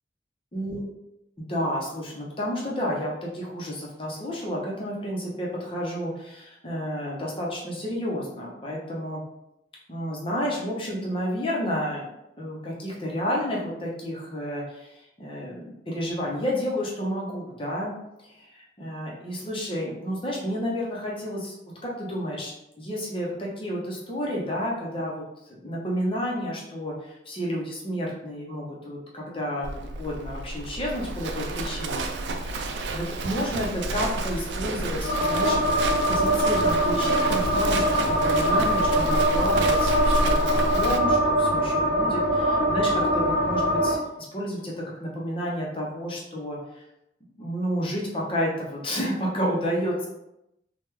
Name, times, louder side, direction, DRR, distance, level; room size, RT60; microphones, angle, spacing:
voice 1, 0.5-0.8 1.4-9.2 9.9-12.1 12.4-17.9 18.2-21.5 21.8-22.5 22.8-25.2 25.6-32.1 32.3-35.7 36.1-46.8 47.4-50.1, equal, 30° left, -3 dB, 0.8 m, -31 dB
Livestock farm animals working animals, 29.6-41.0, right 2 dB, 80° right, 0.4 m, -30 dB
sound 1, 35.0-44.0, equal, 80° left, 0.8 m, -23 dB
3.3 x 2.3 x 3.1 m, 0.85 s
head